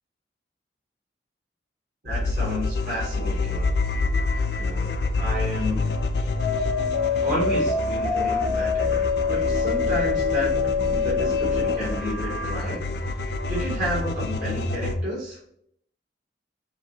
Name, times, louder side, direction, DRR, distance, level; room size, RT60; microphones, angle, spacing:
voice 1, 2.0-3.7 4.6-6.0 7.2-10.5 10.9-12.8 13.2-15.4, equal, 45° right, -7 dB, 1.6 m, -31 dB
sound 1, 2.1-15.0, left 2 dB, 65° left, 0.5 m, -27 dB
sound 2, 6.4-12.5, left 5 dB, 80° right, 1.5 m, -25 dB
4.8 x 3.2 x 2.8 m, 0.69 s
head